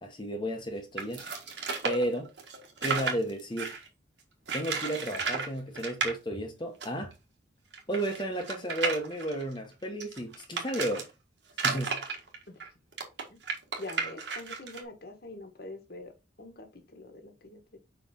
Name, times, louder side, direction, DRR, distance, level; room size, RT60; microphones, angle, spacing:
voice 1, 0.0-1.2 1.8-2.3 2.8-3.7 4.5-7.1 7.9-11.1 11.6-12.1, right 1 dB, 25° left, 1.0 m, -33 dB
sound 1, 1.0-3.9 4.5-5.5 5.7-6.1 6.8-6.9 7.1-7.2 7.7-11.0 11.5-14.8, right 4 dB, 70° right, 1.7 m, -33 dB
voice 2, 13.8-17.8, left 2 dB, 55° left, 1.4 m, -45 dB
5.6 x 4.5 x 4.2 m
head